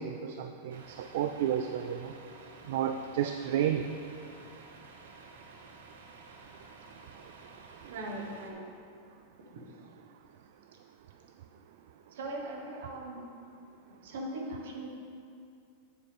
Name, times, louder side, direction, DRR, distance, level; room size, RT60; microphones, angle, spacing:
voice 1, 0.0-2.1 2.7-3.9, right 9 dB, 55° right, 7 dB, 0.3 m, -31 dB
Truck, 0.7-8.5, right 3 dB, 90° right, 0.9 m, -52 dB
voice 2, 7.9-8.6 12.1-13.3 14.0-14.9, right 1 dB, 70° right, 0 dB, 1.4 m, -39 dB
9.0 x 6.7 x 3.6 m, 2.4 s
supercardioid pair, 175°, 0 cm